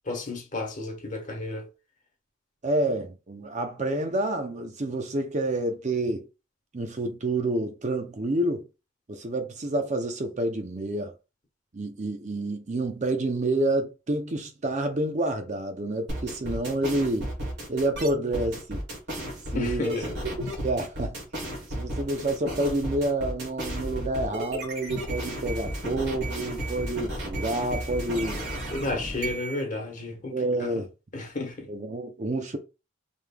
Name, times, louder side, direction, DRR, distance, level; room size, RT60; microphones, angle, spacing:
voice 1, 0.1-1.7 19.5-20.1 28.7-30.8 31.1-31.7, left 2 dB, 40° left, 1.2 m, -32 dB
voice 2, 2.6-6.3 6.7-8.7 9.1-11.1 11.7-17.3 17.7-18.8 19.5-20.0 20.4-21.2 21.8-28.4 30.3-30.9 31.7-32.6, right 1 dB, 35° right, 0.5 m, -28 dB
sound 1, 16.1-29.6, right 1 dB, 60° right, 2.6 m, -33 dB
5.3 x 3.3 x 2.2 m
head